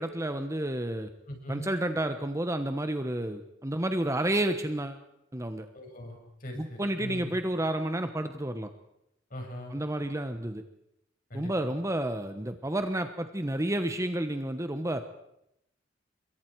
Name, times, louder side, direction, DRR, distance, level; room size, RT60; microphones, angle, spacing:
voice 1, 0.0-1.1 1.5-5.0 5.3-5.7 6.5-8.7 9.7-10.6 11.3-15.0, right 1 dB, 15° right, 8 dB, 1.1 m, -30 dB
voice 2, 1.3-1.7 5.7-7.4 9.3-9.7 11.3-11.7, equal, 45° left, 2 dB, 5.9 m, -41 dB
28.0 x 22.5 x 4.7 m, 0.80 s
head